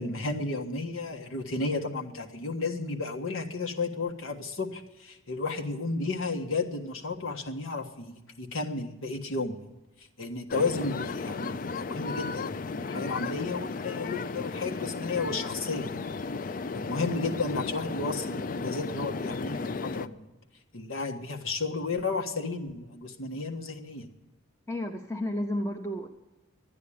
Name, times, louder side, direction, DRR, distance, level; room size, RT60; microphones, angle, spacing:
voice 1, 0.0-9.5 10.2-15.9 16.7-20.3 20.7-24.0, left 3 dB, 90° left, 4 dB, 1.5 m, -33 dB
sound 1, 10.5-20.1, left 4 dB, 40° left, 0.4 m, -34 dB
voice 2, 24.7-26.1, left 1 dB, 10° left, 1 dB, 0.7 m, -32 dB
12.5 x 9.4 x 8.5 m, 1.0 s
head